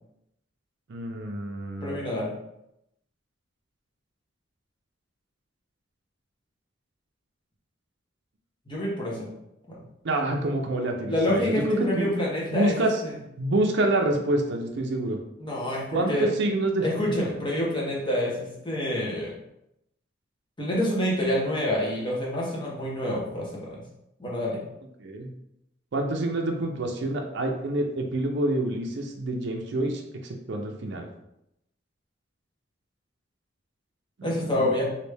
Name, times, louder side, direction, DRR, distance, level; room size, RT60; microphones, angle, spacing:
voice 1, 0.9-2.0 10.0-12.1 12.5-12.9 13.4-15.2 15.9-16.9 25.0-25.3 25.9-31.1 34.2-34.8, right 1 dB, 60° right, 2 dB, 0.4 m, -27 dB
voice 2, 1.8-2.3 8.7-9.3 9.7-9.8 11.1-12.7 13.0-13.1 15.4-16.3 16.8-19.3 20.6-23.8 24.2-24.6 34.2-34.8, left 1 dB, 25° left, -3 dB, 0.8 m, -27 dB
3.2 x 2.5 x 3.3 m, 0.82 s
head